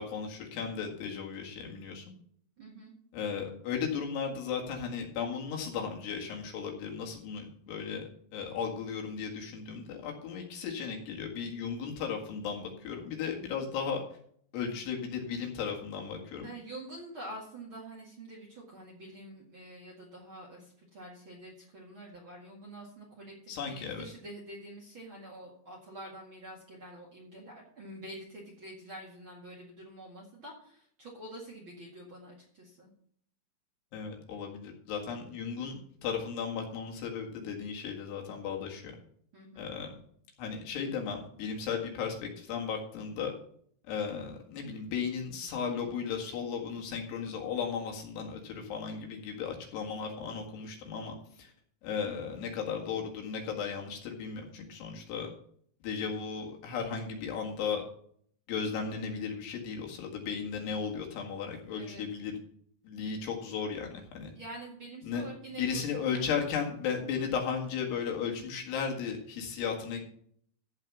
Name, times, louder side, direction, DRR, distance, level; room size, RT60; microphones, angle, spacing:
voice 1, 0.0-2.1 3.1-14.0 14.5-16.5 23.5-24.1 33.9-38.9 39.6-39.9 40.4-43.3 43.9-51.5 51.8-55.3 55.8-57.8 58.5-62.4 62.8-64.3 65.0-65.3 65.5-70.0, left 6 dB, 70° left, 1 dB, 3.9 m, -35 dB
voice 2, 2.6-2.9 16.4-32.9 39.3-39.7 61.7-62.1 64.3-66.4, right 1 dB, 40° right, -2 dB, 2.0 m, -47 dB
14.5 x 4.9 x 6.0 m, 0.62 s
omnidirectional pair, 5.0 m